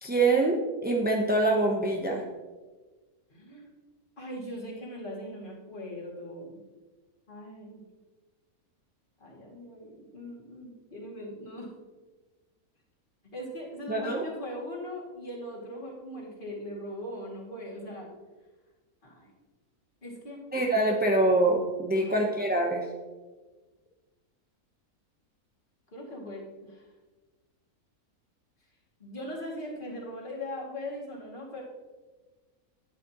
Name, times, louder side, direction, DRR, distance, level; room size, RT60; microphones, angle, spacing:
voice 1, 0.0-2.2 13.9-14.2 20.5-22.9, right 2 dB, 10° right, 0 dB, 0.5 m, -25 dB
voice 2, 3.3-3.7 4.2-6.5 7.3-7.8 9.2-11.7 13.3-18.1 19.0-19.3 20.0-20.4 21.9-22.3 25.9-26.9 29.0-31.6, equal, 35° left, -4 dB, 2.4 m, -40 dB
11.5 x 9.3 x 2.9 m, 1.3 s
omnidirectional pair, 1.6 m